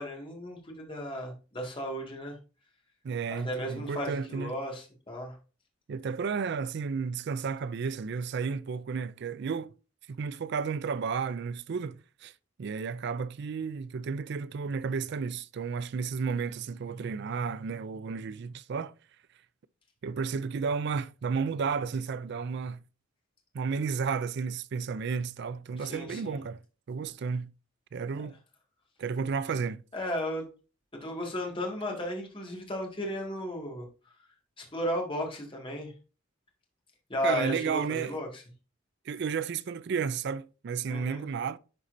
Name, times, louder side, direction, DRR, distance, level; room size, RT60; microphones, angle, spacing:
voice 1, 0.0-2.4 3.3-5.4 25.8-26.4 29.9-30.5 31.0-33.9 34.6-35.9 37.1-38.4 40.9-41.2, equal, 25° left, 1.9 m, -34 dB
voice 2, 3.0-4.5 5.9-9.7 10.1-12.3 12.6-18.9 20.0-22.8 23.5-26.6 26.9-27.5 27.9-28.3 29.0-29.8 37.2-38.2 39.1-41.6, right 5 dB, 55° right, 0.4 m, -32 dB
11.0 x 4.2 x 2.6 m
head